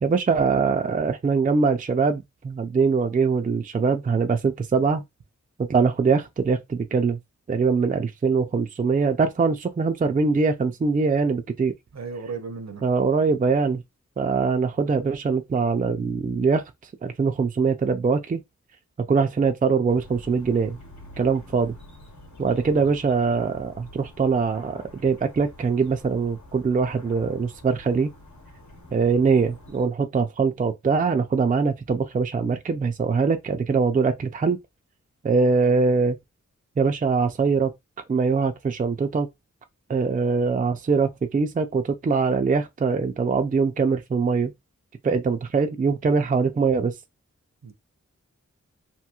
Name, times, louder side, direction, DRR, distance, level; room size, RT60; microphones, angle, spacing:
voice 1, 0.0-5.0 5.6-7.2 7.5-11.7 12.8-13.8 14.2-16.6 17.0-18.4 19.1-20.8 21.2-21.7 22.4-28.1 28.9-34.6 35.2-36.2 36.8-37.7 38.1-39.3 39.9-44.5 45.0-46.9, right 5 dB, 30° right, 0.4 m, -22 dB
voice 2, 11.9-12.8 22.7-23.0 47.6-47.7, right 5 dB, 60° right, 0.7 m, -35 dB
sound 1, 19.9-29.8, left 1 dB, 70° left, 1.0 m, -47 dB
2.9 x 2.7 x 2.3 m
wide cardioid pair, 85°, 30 cm